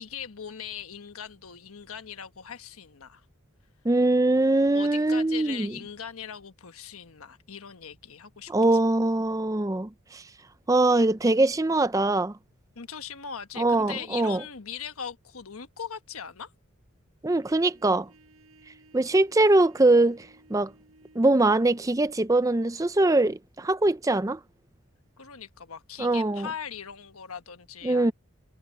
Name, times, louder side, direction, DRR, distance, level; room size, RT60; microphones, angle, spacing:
voice 1, 0.0-3.2 4.7-8.8 12.7-16.5 25.2-28.1, left 7 dB, 90° left, 1.3 m, -40 dB
voice 2, 3.8-5.7 8.5-10.2 10.7-12.3 13.6-14.4 17.2-18.1 18.9-20.7 21.2-24.4 26.0-26.5 27.8-28.1, right 2 dB, 15° right, 0.5 m, -22 dB
Trumpet, 17.3-22.3, right 2 dB, 85° right, 5.0 m, -57 dB
head